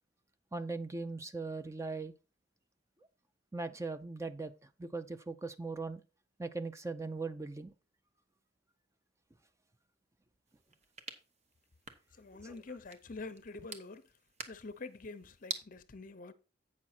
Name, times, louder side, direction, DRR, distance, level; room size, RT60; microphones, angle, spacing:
voice 1, 0.5-2.1 3.5-6.0 6.4-7.7 12.4-12.6, right 3 dB, 15° right, 0.4 m, -39 dB
Pen Cap Removal, 10.5-15.6, right 4 dB, 40° right, 0.9 m, -48 dB
voice 2, 12.1-14.0 14.5-16.3, left 3 dB, 45° left, 0.7 m, -46 dB
8.5 x 6.0 x 4.2 m
head